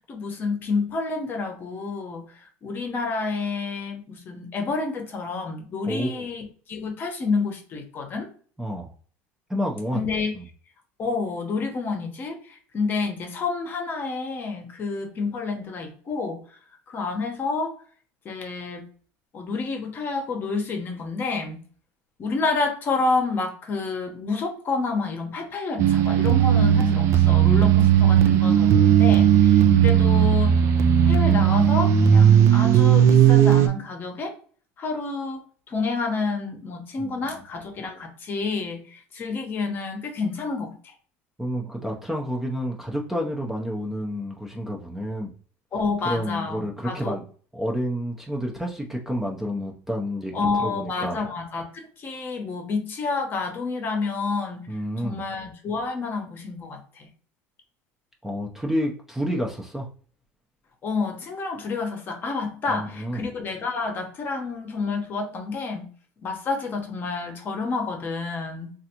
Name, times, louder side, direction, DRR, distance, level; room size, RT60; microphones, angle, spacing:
voice 1, 0.1-8.3 9.9-10.3 11.0-16.4 16.9-17.7 18.2-18.8 19.3-21.6 22.2-30.6 31.0-34.3 34.8-40.9 45.7-47.2 50.3-54.7 55.0-57.1 60.8-65.9 66.2-68.7, left 4 dB, 35° left, 4 dB, 0.9 m, -29 dB
voice 2, 5.9-6.3 8.6-8.9 9.5-10.0 10.3-10.4 37.0-37.2 41.4-45.3 46.0-47.2 47.5-51.2 54.7-55.2 58.2-59.9 62.7-63.2, equal, 5° right, -1 dB, 0.6 m, -29 dB
sound 1, 25.8-33.7, right 9 dB, 55° right, 0.5 m, -16 dB
3.2 x 2.5 x 2.9 m, 0.43 s
supercardioid pair, 120°, 6 cm